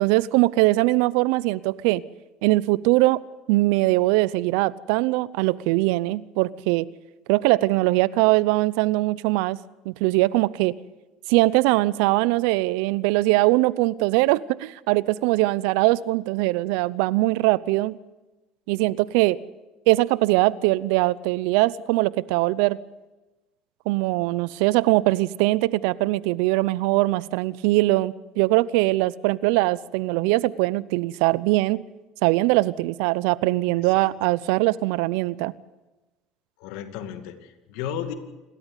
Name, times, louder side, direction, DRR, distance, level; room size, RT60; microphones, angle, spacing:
voice 1, 0.0-2.0 2.4-3.2 3.5-6.9 7.3-9.6 9.8-10.7 11.3-17.9 18.7-19.4 19.9-22.8 23.9-31.8 32.2-35.5, right 19 dB, 75° right, 20 dB, 0.6 m, -21 dB
voice 2, 36.6-38.1, left 9 dB, 75° left, 8 dB, 2.3 m, -34 dB
28.5 x 13.0 x 8.2 m, 1.1 s
supercardioid pair, 90°, 0 cm